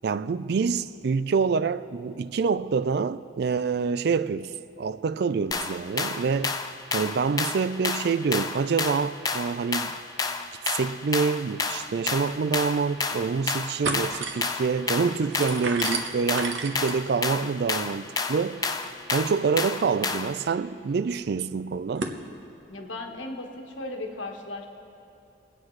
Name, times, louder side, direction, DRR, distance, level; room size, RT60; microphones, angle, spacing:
voice 1, 0.0-4.5 4.8-6.6 6.9-10.0 10.7-18.6 19.1-22.1, right 5 dB, 55° right, 0.4 m, -26 dB
sound 1, 5.5-20.4, left 4 dB, 20° left, 0.4 m, -30 dB
sound 2, 13.1-13.3 13.6-22.2, right 4 dB, 75° right, 0.9 m, -37 dB
voice 2, 22.7-24.7, left 2 dB, 85° left, 1.3 m, -36 dB
23.5 x 8.8 x 3.2 m
head